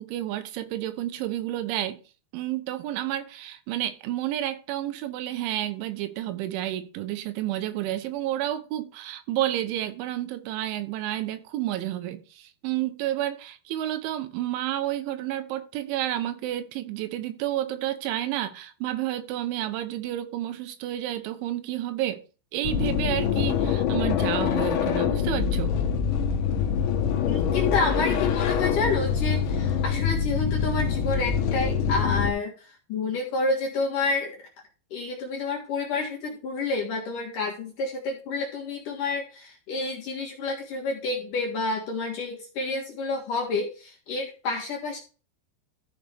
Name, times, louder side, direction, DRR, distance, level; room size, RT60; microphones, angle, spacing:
voice 1, 0.0-2.0 2.3-22.2 22.5-25.8, right 13 dB, 90° right, 3.4 m, -30 dB
sound 1, 22.6-32.3, left 7 dB, 80° left, 3.2 m, -25 dB
voice 2, 27.2-34.4 34.9-45.0, left 3 dB, 60° left, 2.6 m, -29 dB
14.0 x 5.5 x 3.5 m
omnidirectional pair, 5.3 m